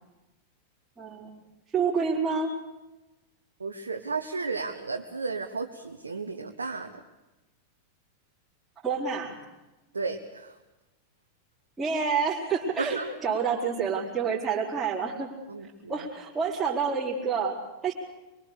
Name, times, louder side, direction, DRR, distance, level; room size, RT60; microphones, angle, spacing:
voice 1, 1.0-1.4 1.7-2.5 8.8-9.4 11.8-15.3 15.9-17.9, right 5 dB, 10° right, -6 dB, 4.4 m, -28 dB
voice 2, 3.6-6.9 9.9-10.6 12.8-13.2 15.5-16.1, right 4 dB, 75° right, 4 dB, 1.3 m, -33 dB
24.0 x 23.5 x 6.8 m, 1.0 s
figure-of-eight pair, 90°, 0 cm